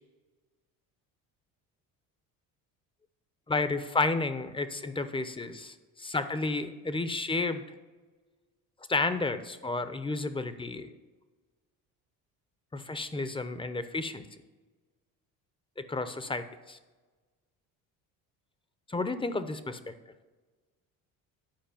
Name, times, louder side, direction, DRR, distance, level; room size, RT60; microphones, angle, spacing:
voice 1, 3.5-7.6 8.9-10.9 12.7-14.2 15.8-16.8 18.9-19.9, left 3 dB, 15° left, 11 dB, 0.8 m, -31 dB
10.5 x 4.8 x 7.0 m, 1.3 s
supercardioid pair, 75°, 41 cm